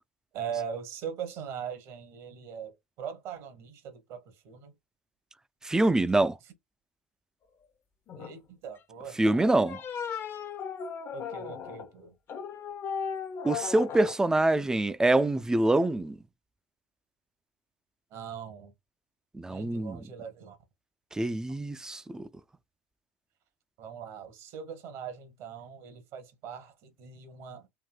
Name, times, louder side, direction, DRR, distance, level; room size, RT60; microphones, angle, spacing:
voice 1, 0.3-4.7 8.2-9.5 11.1-12.1 18.1-18.7 19.5-20.6 23.8-27.7, right 7 dB, 55° right, 1.0 m, -41 dB
voice 2, 5.6-6.4 9.2-9.8 13.4-16.2 19.3-20.0 21.1-22.3, right 2 dB, 10° right, 0.4 m, -25 dB
sound 1, 8.1-8.4 9.4-11.9 12.3-14.1, left 7 dB, 35° left, 0.6 m, -37 dB
3.5 x 2.6 x 2.3 m
figure-of-eight pair, 75°, 7 cm